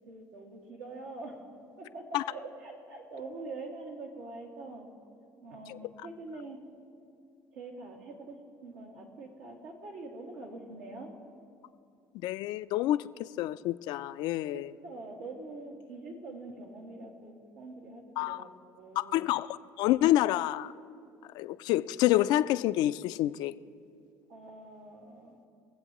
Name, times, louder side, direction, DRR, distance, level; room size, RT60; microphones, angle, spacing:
voice 1, 0.1-1.5 1.8-4.9 5.4-6.6 7.5-11.1 14.5-18.5 18.8-19.3 24.3-25.4, right 2 dB, 85° right, 2.0 m, -44 dB
voice 2, 12.2-13.0 13.4-14.7 18.2-18.4 19.0-20.7 21.4-23.5, left 14 dB, 70° left, 0.4 m, -28 dB
23.0 x 7.9 x 3.0 m
supercardioid pair, 90°, 8 cm